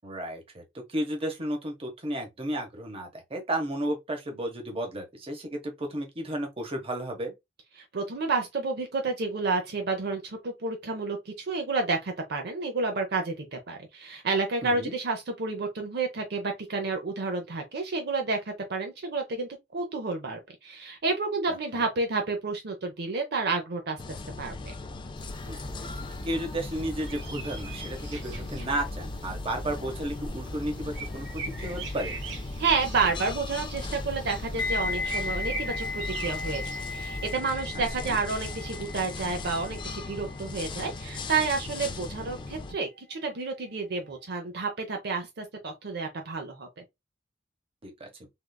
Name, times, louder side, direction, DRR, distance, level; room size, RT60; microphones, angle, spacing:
voice 1, 0.0-7.3 14.6-14.9 21.5-21.8 25.4-32.2 38.0-38.2 47.8-48.3, right 1 dB, 30° right, 0.9 m, -33 dB
voice 2, 7.8-24.7 32.6-36.6 36.9-46.7, right 4 dB, 60° right, 0.6 m, -30 dB
sound 1, 24.0-42.7, left 3 dB, 25° left, 0.3 m, -38 dB
sound 2, 25.2-37.3, right 1 dB, 90° right, 0.9 m, -40 dB
sound 3, 34.6-43.5 43.8-44.1, left 4 dB, 70° left, 0.7 m, -37 dB
3.6 x 2.4 x 2.3 m
head